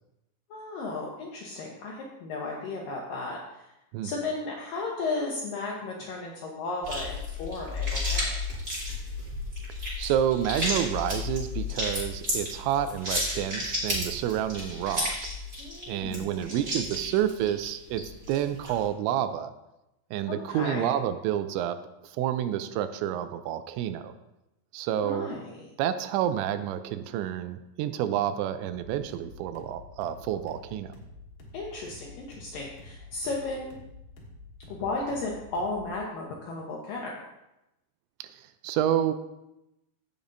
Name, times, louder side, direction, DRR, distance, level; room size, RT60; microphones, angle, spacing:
voice 1, 0.5-3.6 4.0-8.4 15.6-16.6 20.3-20.9 25.0-25.6 31.5-33.8 34.7-37.1, left 3 dB, 75° left, -2 dB, 2.1 m, -34 dB
sound 1, 6.8-18.8, left 2 dB, 20° right, 2.7 m, -32 dB
voice 2, 10.0-15.2 15.9-19.5 20.1-24.1 24.7-25.3 25.8-30.9 38.2-39.1, right 10 dB, 85° right, 11 dB, 2.9 m, -29 dB
sound 2, 28.6-36.0, left 2 dB, 60° left, 2.8 m, -48 dB
16.0 x 6.9 x 2.6 m, 0.91 s
omnidirectional pair, 5.2 m